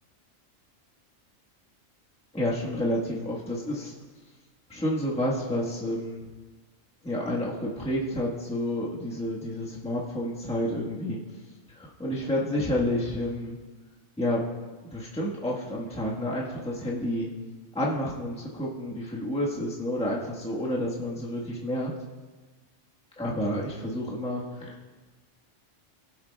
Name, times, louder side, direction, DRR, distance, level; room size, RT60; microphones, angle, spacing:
voice 1, 2.3-3.9 4.7-6.2 7.0-11.2 11.7-13.6 14.2-14.4 14.9-17.3 17.7-21.9 23.2-24.7, left 1 dB, 5° left, -5 dB, 1.3 m, -30 dB
22.0 x 7.8 x 2.3 m, 1.3 s
omnidirectional pair, 1.3 m